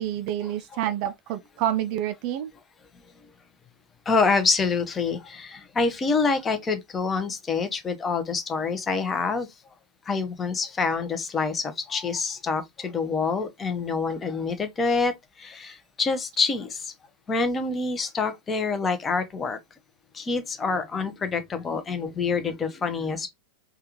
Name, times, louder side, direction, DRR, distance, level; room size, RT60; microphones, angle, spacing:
voice 1, 0.0-2.5, right 12 dB, 45° right, 0.4 m, -28 dB
voice 2, 4.1-9.5 10.1-15.1 15.4-16.8 17.3-19.6 20.1-23.3, left 4 dB, 20° left, 0.7 m, -26 dB
3.4 x 2.3 x 2.9 m
figure-of-eight pair, 90°, 0 cm